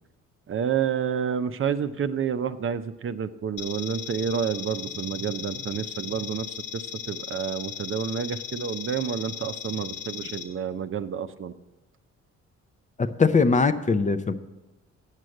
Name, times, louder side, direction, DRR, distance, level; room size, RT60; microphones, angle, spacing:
voice 1, 0.5-11.5, right 7 dB, 45° right, 10 dB, 0.6 m, -29 dB
sound 1, 3.6-10.4, left 10 dB, 75° left, 1.6 m, -37 dB
voice 2, 13.0-14.3, left 4 dB, 25° left, 10 dB, 0.5 m, -21 dB
8.2 x 6.4 x 7.6 m, 1.1 s
cardioid pair, 90°, 30 cm